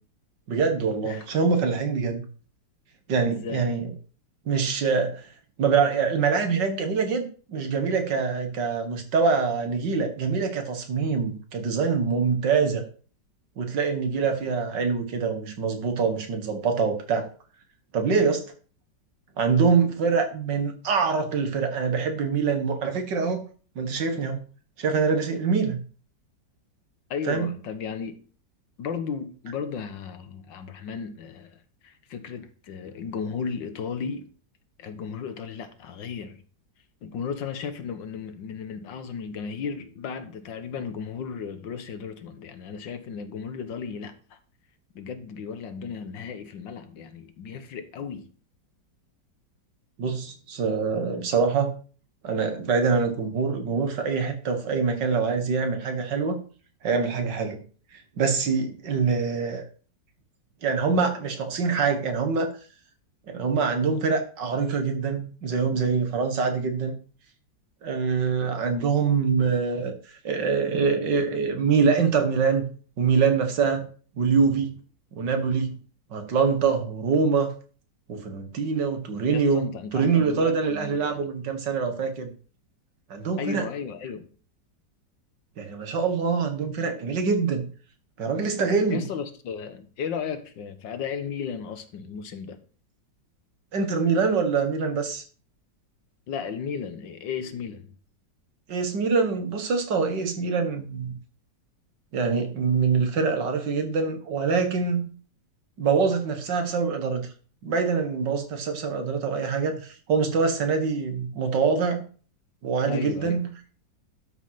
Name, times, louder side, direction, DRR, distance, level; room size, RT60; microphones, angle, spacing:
voice 1, 0.5-2.2 3.1-3.9 4.5-5.3 5.6-12.8 13.6-17.3 17.9-18.4 19.4-23.4 23.8-24.5 24.8-25.8 27.3-27.5 50.0-51.8 52.2-56.4 56.8-57.6 57.9-59.6 60.6-62.5 63.3-66.9 67.8-70.0 70.2-72.7 73.0-73.9 74.2-74.7 75.1-75.8 76.1-77.5 78.1-79.7 79.9-82.3 83.1-83.7 85.6-87.6 88.2-89.1 93.7-95.2 98.7-101.1 102.1-105.1 105.8-107.3 107.6-112.0 112.6-113.5, right 5 dB, 70° right, 2.2 m, -24 dB
voice 2, 3.2-3.7 27.1-28.2 28.8-34.3 34.8-36.4 37.0-44.4 45.0-48.3 79.3-81.3 83.4-84.3 88.9-92.6 96.3-98.0 112.9-113.4, left 6 dB, 80° left, 1.8 m, -35 dB
12.0 x 5.3 x 5.8 m
omnidirectional pair, 2.0 m